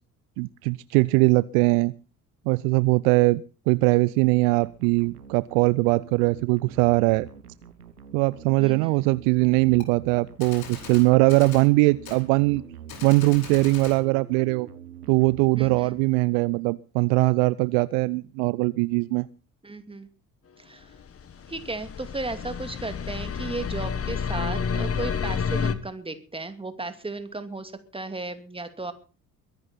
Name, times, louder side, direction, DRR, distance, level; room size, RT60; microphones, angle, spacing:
voice 1, 0.4-1.9 2.5-7.3 8.1-12.6 13.0-14.7 15.1-19.3, right 25 dB, 60° right, 20 dB, 0.6 m, -21 dB
sound 1, 4.6-16.5, right 8 dB, 90° right, 1.3 m, -46 dB
voice 2, 8.6-9.1 15.6-15.9 19.6-20.1 20.6-20.9 21.5-28.9, right 2 dB, 10° right, 9 dB, 2.5 m, -35 dB
Gunshot gunfire, 9.8-9.9 10.4-11.7 12.1-12.2 12.9-14.0, left 6 dB, 50° left, 4.6 m, -41 dB
sound 2, 21.0-25.7, left 6 dB, 30° left, 1.6 m, -29 dB
22.5 x 11.0 x 4.2 m, 0.36 s
figure-of-eight pair, 55°, 45 cm